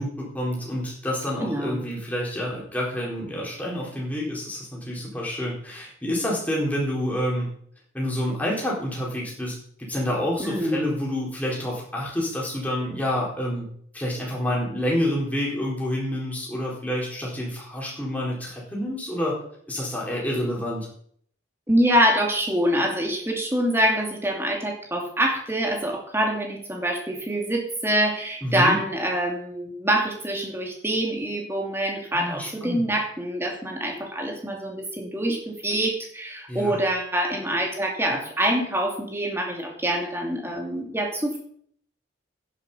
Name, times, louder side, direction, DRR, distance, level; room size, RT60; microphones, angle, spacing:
voice 1, 0.0-7.5 7.9-13.6 13.9-19.4 19.7-20.9 28.4-28.8 32.1-32.8 36.5-36.8, left 1 dB, 10° left, -4 dB, 4.1 m, -28 dB
voice 2, 1.4-1.8 10.4-10.8 21.7-41.4, right 1 dB, 10° right, 1 dB, 2.4 m, -25 dB
10.5 x 10.5 x 5.6 m, 0.63 s
head